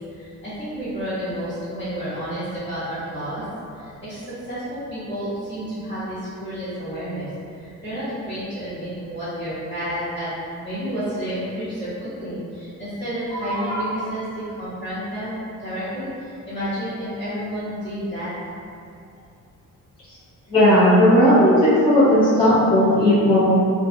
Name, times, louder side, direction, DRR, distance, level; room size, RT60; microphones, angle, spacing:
voice 1, 0.1-3.4 3.7-10.3 10.6-18.3, equal, 35° left, -16 dB, 0.8 m, -30 dB
voice 2, 20.5-23.5, left 1 dB, 20° left, -12 dB, 0.4 m, -16 dB
2.6 x 2.3 x 2.5 m, 2.5 s
wide cardioid pair, 170°, 31 cm